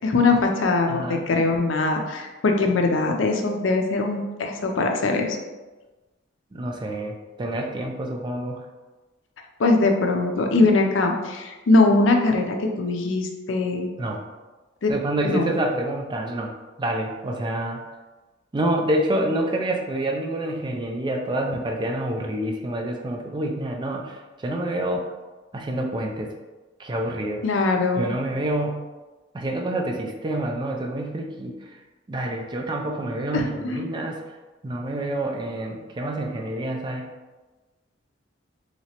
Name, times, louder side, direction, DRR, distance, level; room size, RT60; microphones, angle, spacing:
voice 1, 0.0-5.4 9.6-13.9 14.8-14.9 15.2-15.5 27.4-28.1 33.3-33.8, left 3 dB, 75° left, 3 dB, 0.5 m, -21 dB
voice 2, 0.9-1.3 6.5-8.6 14.0-14.2 14.9-16.5 16.8-17.8 18.5-25.1 25.5-26.3 26.8-27.4 28.0-28.8 29.3-31.8 32.1-34.2 34.6-37.1, right 1 dB, 25° right, 1 dB, 0.3 m, -27 dB
3.1 x 2.9 x 2.8 m, 1.2 s
head